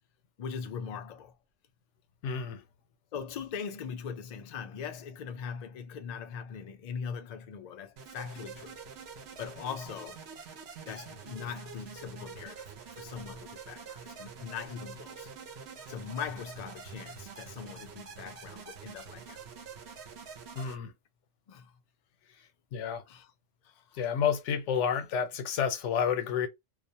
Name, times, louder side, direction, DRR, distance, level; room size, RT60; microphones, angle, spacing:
voice 1, 0.4-1.4 3.1-8.8 9.4-10.2 10.9-12.7 13.0-15.3 15.9-19.4 21.5-21.8 23.1-23.3 23.6-24.1, left 6 dB, 70° left, 0.4 m, -41 dB
voice 2, 2.2-2.6 20.6-20.9 22.7-23.0 24.0-26.5, left 7 dB, 90° left, 0.9 m, -30 dB
sound 1, 8.0-20.8, right 6 dB, 65° right, 0.9 m, -46 dB
2.3 x 2.0 x 2.7 m
omnidirectional pair, 1.2 m